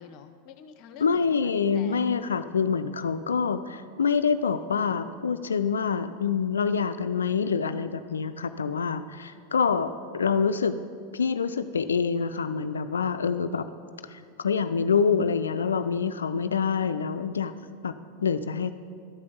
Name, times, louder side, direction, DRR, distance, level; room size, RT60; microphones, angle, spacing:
voice 1, 0.0-2.0 9.3-9.4, left 7 dB, 55° left, 9 dB, 0.6 m, -48 dB
voice 2, 1.0-10.8 11.1-13.7 14.1-17.5 17.8-17.9 18.2-18.7, left 6 dB, 90° left, 10 dB, 0.3 m, -26 dB
11.5 x 5.1 x 6.9 m, 2.2 s
hypercardioid pair, 95°, 0 cm